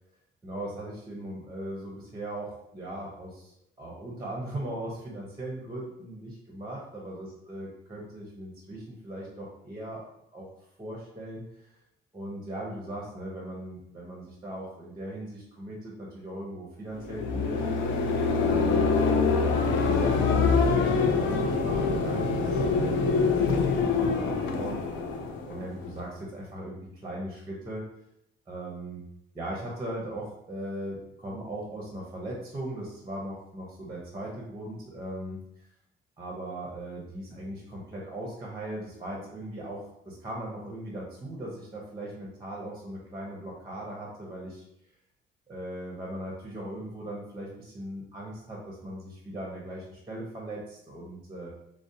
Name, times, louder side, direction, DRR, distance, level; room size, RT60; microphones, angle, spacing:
voice 1, 0.4-10.1 10.3-10.5 10.8-11.7 12.1-18.1 18.4-18.9 19.6-24.8 25.5-27.8 28.5-29.0 29.3-35.7 36.2-44.6 45.5-51.5, right 1 dB, 20° right, -2 dB, 0.6 m, -39 dB
sound 1, 17.0-26.0, left 4 dB, 75° left, 0.4 m, -25 dB
2.6 x 2.0 x 2.6 m, 0.79 s
cardioid pair, 90°, 20 cm